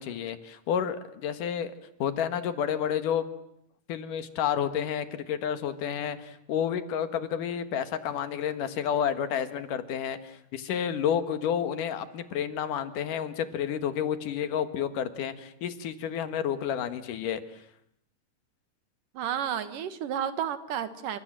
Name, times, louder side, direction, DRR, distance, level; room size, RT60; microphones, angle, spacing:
voice 1, 0.0-1.7 2.0-3.2 3.9-17.4, left 8 dB, 80° left, 10 dB, 3.2 m, -30 dB
voice 2, 19.1-21.2, right 9 dB, 85° right, 11 dB, 3.2 m, -31 dB
30.0 x 26.0 x 7.6 m, 0.75 s
omnidirectional pair, 3.7 m